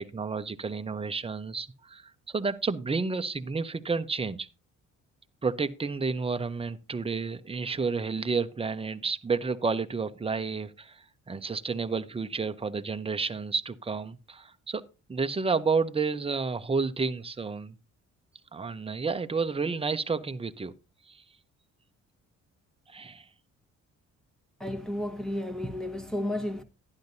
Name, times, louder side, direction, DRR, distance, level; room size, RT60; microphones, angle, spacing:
voice 1, 0.0-4.5 5.4-14.8 15.1-17.7 18.5-20.7 21.1-21.2 22.9-23.3, right 4 dB, 20° right, 0.7 m, -31 dB
voice 2, 24.6-26.6, left 1 dB, ahead, 1.3 m, -32 dB
11.5 x 10.5 x 2.7 m
cardioid pair, 90°, 30 cm